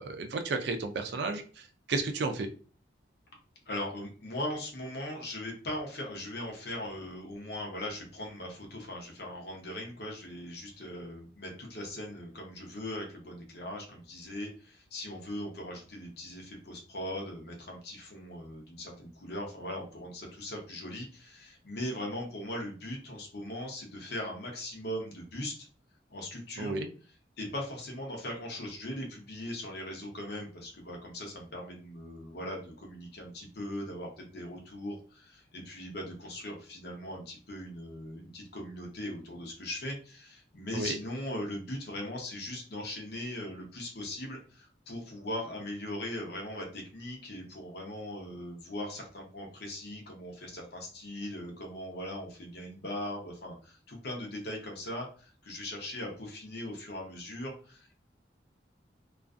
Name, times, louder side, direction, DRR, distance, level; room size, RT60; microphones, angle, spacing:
voice 1, 0.0-2.5 26.6-26.9 40.7-41.0, right 3 dB, 65° right, 6 dB, 0.4 m, -33 dB
voice 2, 3.7-25.7 26.1-26.8 27.4-58.0, left 1 dB, 60° left, 0 dB, 0.7 m, -39 dB
2.5 x 2.3 x 2.4 m, 0.39 s
head